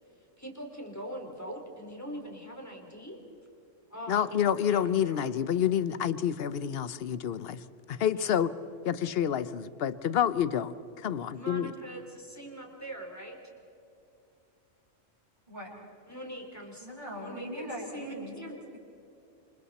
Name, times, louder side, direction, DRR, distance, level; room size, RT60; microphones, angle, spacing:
voice 1, 0.4-3.2 3.9-4.3 4.7-5.3 8.1-8.3 11.3-13.4 16.1-16.9 17.1-17.7 17.9-18.6, right 1 dB, 10° left, 1 dB, 3.6 m, -42 dB
voice 2, 4.1-8.5 8.8-11.7, left 9 dB, 55° left, 15 dB, 0.9 m, -28 dB
voice 3, 16.8-18.4, equal, 35° right, -7 dB, 6.4 m, -40 dB
28.0 x 26.5 x 4.2 m, 2.7 s
omnidirectional pair, 1.3 m